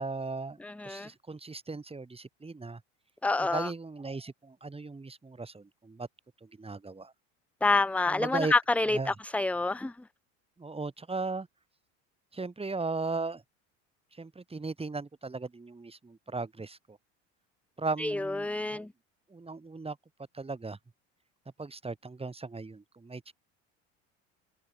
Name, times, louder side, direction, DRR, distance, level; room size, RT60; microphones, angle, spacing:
voice 1, 0.0-0.6 0.8-2.8 3.4-6.1 6.4-7.1 8.1-8.5 8.9-9.1 10.6-11.5 12.3-13.4 14.2-17.0 17.8-18.9 19.3-20.0 20.3-20.8 21.6-23.3, right 3 dB, 15° right, 4.1 m, -37 dB
voice 2, 0.6-1.1 3.2-3.7 7.6-9.9 18.0-18.9, left 3 dB, 5° left, 0.7 m, -28 dB
hypercardioid pair, 80°, 36 cm